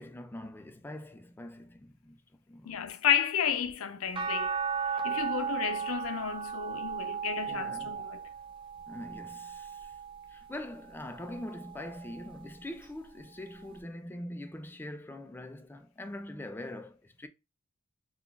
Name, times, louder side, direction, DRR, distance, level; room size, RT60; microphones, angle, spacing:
voice 1, 0.0-2.2 2.5-2.8 7.5-8.1 8.9-9.9 10.3-17.3, left 1 dB, 10° left, 0.3 m, -43 dB
voice 2, 2.7-4.6 4.8-8.2, left 8 dB, 75° left, 0.5 m, -32 dB
sound 1, 4.2-10.5 11.0-12.4 13.8-13.9, right 6 dB, 25° right, 0.6 m, -36 dB
3.9 x 2.3 x 3.4 m
head